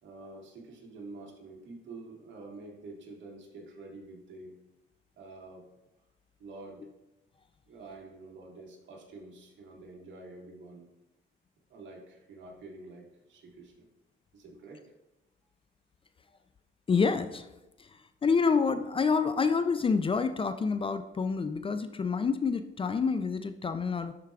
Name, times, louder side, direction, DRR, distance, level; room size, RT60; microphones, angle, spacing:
voice 1, 0.0-4.5 5.2-5.6 6.4-6.8 7.6-10.9 11.7-13.8 14.3-14.8, right 2 dB, 70° right, -1 dB, 1.8 m, -47 dB
voice 2, 16.9-17.5 17.8-17.9 18.2-24.1, left 5 dB, 25° left, 10 dB, 0.4 m, -27 dB
11.5 x 4.6 x 2.4 m, 0.94 s
cardioid pair, 90°, 20 cm